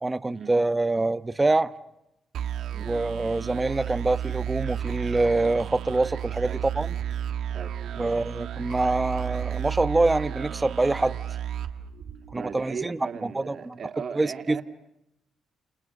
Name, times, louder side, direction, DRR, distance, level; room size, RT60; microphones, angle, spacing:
voice 1, 0.0-1.7 2.8-6.5 6.7-7.0 8.0-11.2 12.3-13.8 14.1-14.6, right 2 dB, 20° right, 1.1 m, -25 dB
sound 1, 2.3-12.6, right 10 dB, 75° right, 1.7 m, -32 dB
voice 2, 7.5-8.1 12.3-14.6, right 6 dB, 50° right, 3.2 m, -37 dB
29.5 x 29.5 x 6.6 m
cardioid pair, 90°, 0 cm